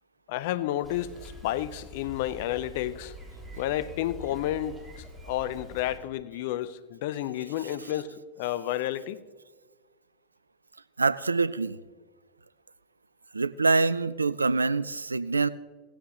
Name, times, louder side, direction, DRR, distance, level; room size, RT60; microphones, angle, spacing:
voice 1, 0.3-3.1 3.5-9.2, left 13 dB, 60° left, 0.6 m, -31 dB
Bicycle, 0.8-6.0, equal, 15° right, 3.8 m, -45 dB
voice 2, 11.0-11.8 13.3-15.5, right 3 dB, 85° right, 0.4 m, -25 dB
17.0 x 15.0 x 3.0 m
figure-of-eight pair, 90°, 0 cm